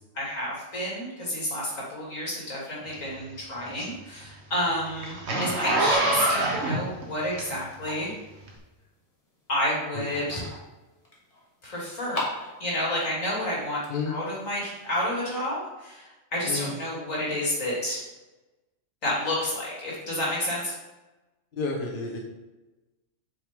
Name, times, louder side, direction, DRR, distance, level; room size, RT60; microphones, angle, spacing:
voice 1, 0.1-8.1 9.5-10.4 11.6-12.2 12.6-13.8 14.1-18.0 19.0-20.8, left 1 dB, 85° left, -6 dB, 3.3 m, -30 dB
Zipper (clothing), 2.9-7.9 8.4-8.5, right 2 dB, 60° right, 1.5 m, -26 dB
sound 1, 5.9-15.3, left 1 dB, 25° left, 1.7 m, -42 dB
voice 2, 9.9-10.4 13.9-14.1 16.5-16.7 21.5-22.2, left 4 dB, 45° left, 0 dB, 1.2 m, -31 dB
8.1 x 6.2 x 3.8 m, 1.1 s
omnidirectional pair, 1.3 m